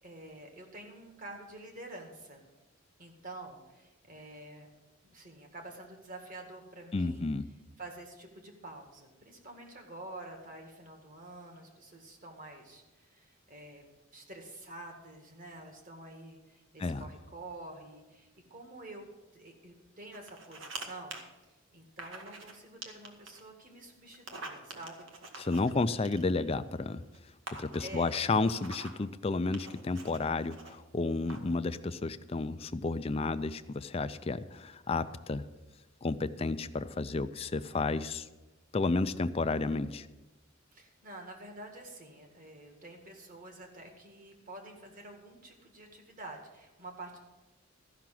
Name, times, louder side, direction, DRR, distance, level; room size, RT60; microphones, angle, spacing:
voice 1, 0.0-2.4 3.0-4.7 5.1-7.3 7.8-13.8 14.1-19.1 19.3-25.1 25.4-25.5 25.7-25.9 27.8-28.1 40.7-47.2, right 2 dB, 40° right, 3 dB, 1.9 m, -48 dB
voice 2, 6.9-7.5 16.8-17.1 25.4-27.0 27.6-35.5 36.0-38.3 38.7-40.1, left 3 dB, 30° left, 11 dB, 0.4 m, -31 dB
sound 1, 20.1-20.8 21.1-21.2 22.0-22.6 22.8-23.4 24.1-26.5 27.1-27.2 27.5-29.0 29.5-30.7 31.3-31.6, right 3 dB, 75° right, 1.5 m, -45 dB
13.5 x 5.9 x 7.6 m, 1.1 s
head